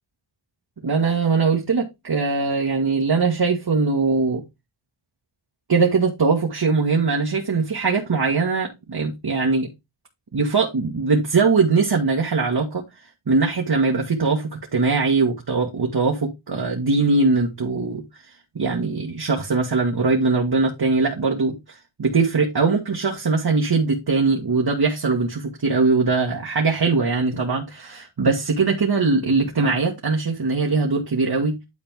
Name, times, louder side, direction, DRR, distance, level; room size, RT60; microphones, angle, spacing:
voice 1, 0.8-4.4 5.7-9.7 10.3-12.8 13.3-18.0 18.6-31.6, right 4 dB, 50° right, 1.7 m, -21 dB
10.0 x 4.4 x 3.6 m
wide cardioid pair, 70°, 47 cm